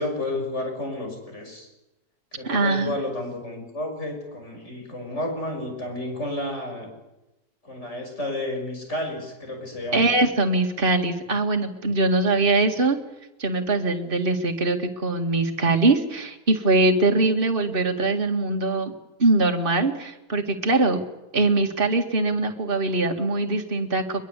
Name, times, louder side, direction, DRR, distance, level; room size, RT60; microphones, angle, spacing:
voice 1, 0.0-1.7 2.3-6.9 7.6-10.1 12.4-12.8, left 1 dB, 45° left, 3 dB, 6.5 m, -31 dB
voice 2, 2.4-2.9 9.9-13.0 13.4-18.9 19.2-21.0 21.3-24.3, right 2 dB, 35° right, 4 dB, 2.3 m, -22 dB
23.5 x 21.5 x 8.3 m, 0.95 s
omnidirectional pair, 1.7 m